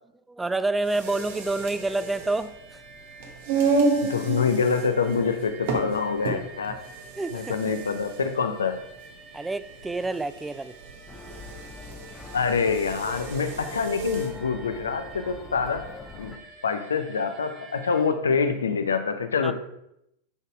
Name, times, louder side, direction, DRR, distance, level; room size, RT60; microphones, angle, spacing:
voice 1, 0.3-2.8 7.2-7.6 9.3-10.7 19.4-19.5, right 2 dB, 10° right, 14 dB, 0.4 m, -28 dB
sound 1, 0.8-14.4, right 3 dB, 55° right, 1.4 m, -31 dB
sound 2, 1.0-18.1, right 5 dB, 35° right, 1.3 m, -48 dB
voice 2, 4.0-6.8 7.3-8.8 12.3-15.9 16.2-19.5, left 5 dB, 70° left, 8 dB, 0.7 m, -26 dB
sound 3, 11.1-16.4, left 3 dB, 10° left, 0.9 m, -43 dB
10.5 x 4.1 x 4.6 m, 0.79 s
figure-of-eight pair, 90°, 0 cm